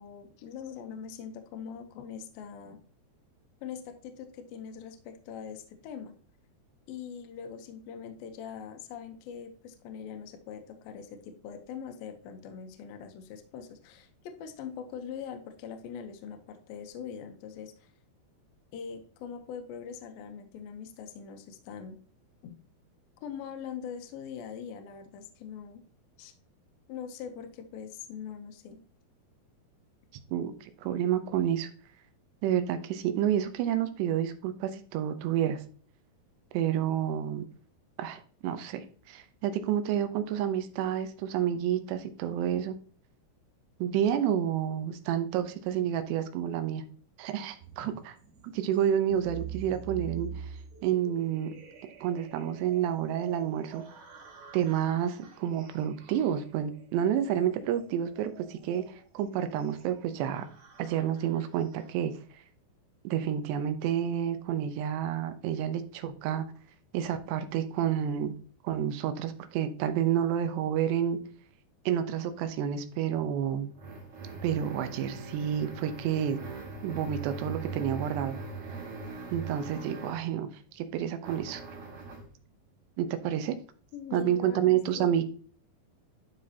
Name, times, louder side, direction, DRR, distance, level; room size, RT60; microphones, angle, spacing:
voice 1, 0.0-2.8 3.6-6.1 6.9-17.9 18.7-22.0 22.4-22.6 23.2-25.8 26.2-26.3 26.9-28.8 83.9-85.1, left 7 dB, 75° left, 5 dB, 2.4 m, -42 dB
voice 2, 30.3-31.7 32.4-35.6 36.5-37.5 38.0-42.8 43.8-46.8 47.2-48.2 48.4-50.5 50.8-51.5 52.0-53.8 54.5-60.5 60.8-62.1 63.0-66.4 66.9-68.3 68.6-71.2 71.9-73.7 74.4-76.4 76.8-78.4 79.3-81.6 83.0-83.6 84.1-85.2, right 10 dB, 90° right, 10 dB, 3.0 m, -29 dB
sound 1, 47.6-62.3, right 7 dB, 75° right, 4.1 m, -47 dB
sound 2, 73.1-80.3 81.2-82.3, right 4 dB, 55° right, 3.1 m, -41 dB
11.5 x 5.2 x 2.8 m, 0.43 s
omnidirectional pair, 4.7 m